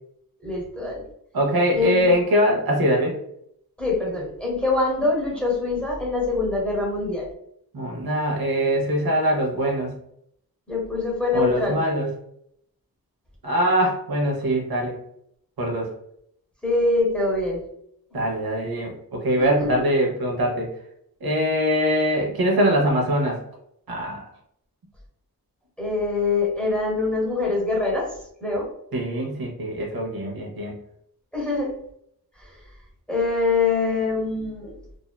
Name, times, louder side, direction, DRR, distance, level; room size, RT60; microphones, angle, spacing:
voice 1, 0.4-1.0 1.7-2.2 3.8-7.3 10.7-11.8 16.6-17.6 18.1-18.2 19.4-19.8 25.8-28.1 28.4-28.6 31.3-31.8 32.4-32.5 33.1-34.8, left 3 dB, 5° left, -4 dB, 0.8 m, -24 dB
voice 2, 1.3-3.2 7.7-9.9 11.3-12.1 13.4-15.0 15.6-15.9 18.1-20.7 21.2-23.4 23.9-24.2 28.9-30.8, equal, 85° right, 0 dB, 0.8 m, -22 dB
2.6 x 2.1 x 2.2 m, 0.72 s
wide cardioid pair, 150°, 35 cm